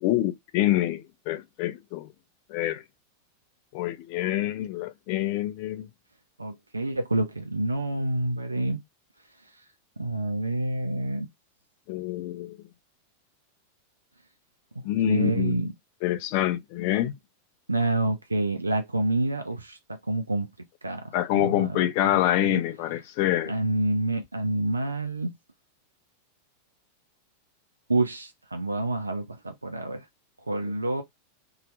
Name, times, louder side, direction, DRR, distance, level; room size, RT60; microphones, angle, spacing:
voice 1, 0.0-2.1 2.5-2.8 3.7-5.9 11.9-12.6 14.8-15.7 16.0-17.1 21.1-23.5, left 14 dB, 45° left, 0.4 m, -26 dB
voice 2, 6.4-8.8 10.0-11.3 15.1-15.7 17.7-20.5 20.8-21.0 21.3-22.6 23.5-25.3 27.9-30.0 30.5-31.0, right 2 dB, 80° right, 0.4 m, -28 dB
2.8 x 2.3 x 3.0 m
figure-of-eight pair, 90°, 0 cm